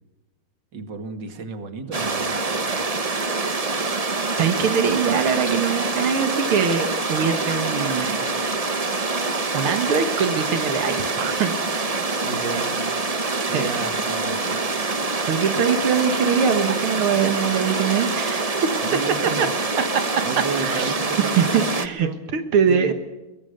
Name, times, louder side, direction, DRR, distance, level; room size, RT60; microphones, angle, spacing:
voice 1, 0.7-3.0 12.2-12.8 13.4-14.6 18.8-19.5 20.2-22.2 22.7-22.9, right 4 dB, 55° right, 7 dB, 2.7 m, -32 dB
sound 1, 1.9-21.9, right 3 dB, 25° right, 0.8 m, -25 dB
voice 2, 4.4-8.2 8.8-9.2 9.5-11.6 13.5-13.7 15.3-18.7 19.4-19.5 20.6-20.9 21.3-22.9, right 7 dB, 85° right, 8 dB, 2.3 m, -23 dB
23.0 x 22.5 x 6.6 m, 1.1 s
omnidirectional pair, 2.3 m